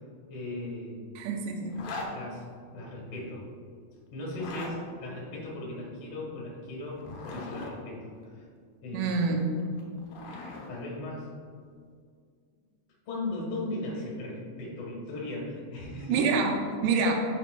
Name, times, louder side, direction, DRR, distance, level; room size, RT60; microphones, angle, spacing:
voice 1, 0.3-1.0 2.1-2.4 2.7-3.5 4.1-8.5 8.8-9.2 10.7-11.3 13.1-16.2, left 2 dB, 50° left, -4 dB, 1.9 m, -37 dB
voice 2, 1.2-2.1 8.9-9.5 16.1-17.1, right 4 dB, 80° right, 2 dB, 2.7 m, -27 dB
Zipper (clothing), 1.7-2.1 4.3-4.7 6.9-7.7 9.6-10.7, left 3 dB, 75° left, 2.1 m, -40 dB
8.9 x 6.7 x 2.2 m, 2.1 s
omnidirectional pair, 5.0 m